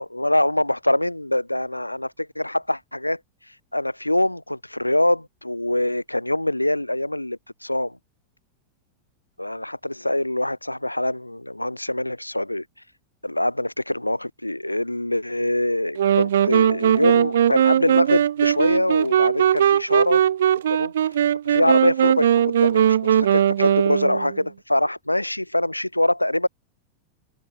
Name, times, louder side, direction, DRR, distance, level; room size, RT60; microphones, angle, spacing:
voice 1, 0.0-3.2 3.7-8.0 9.4-12.6 13.2-20.3 20.7-20.9 21.5-26.5, left 1 dB, 85° left, 1.9 m, -24 dB
sound 1, 16.0-24.4, right 10 dB, 65° right, 1.0 m, -19 dB
figure-of-eight pair, 90°, 0 cm